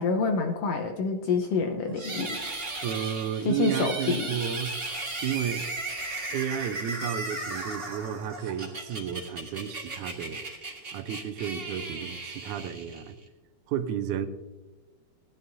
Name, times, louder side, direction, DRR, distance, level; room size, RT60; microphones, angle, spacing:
voice 1, 0.0-2.4 3.4-4.3, left 4 dB, 70° left, 4 dB, 1.6 m, -27 dB
sound 1, 1.9-13.3, right 2 dB, 25° right, 1.3 m, -36 dB
voice 2, 2.8-4.7 5.2-5.7 6.3-10.4 10.9-13.2 13.7-14.3, right 9 dB, 80° right, 10 dB, 2.1 m, -32 dB
17.5 x 10.5 x 2.7 m, 1.2 s
omnidirectional pair, 3.5 m